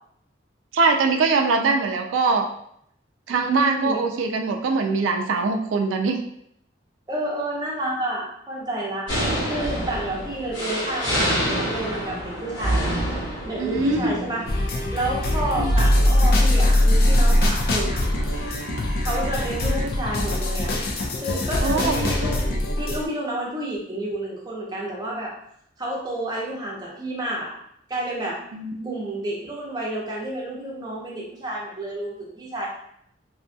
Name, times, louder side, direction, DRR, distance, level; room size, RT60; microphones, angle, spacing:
voice 1, 0.7-2.5 3.3-6.2 13.6-14.1 15.6-15.7 21.6-22.1 28.5-29.0, right 4 dB, 85° right, 4 dB, 0.3 m, -22 dB
voice 2, 3.3-4.0 7.1-9.0 9.5-12.9 13.4-14.5 14.9-18.0 19.0-20.7 21.2-22.4 22.8-25.3 25.8-27.5 27.9-28.4 28.8-32.7, right 1 dB, 20° right, -4 dB, 0.6 m, -30 dB
sound 1, 9.1-19.8, equal, 80° left, 1.4 m, -29 dB
sound 2, 14.5-23.1, left 1 dB, 50° left, 0.4 m, -21 dB
2.7 x 2.3 x 2.6 m, 0.71 s
head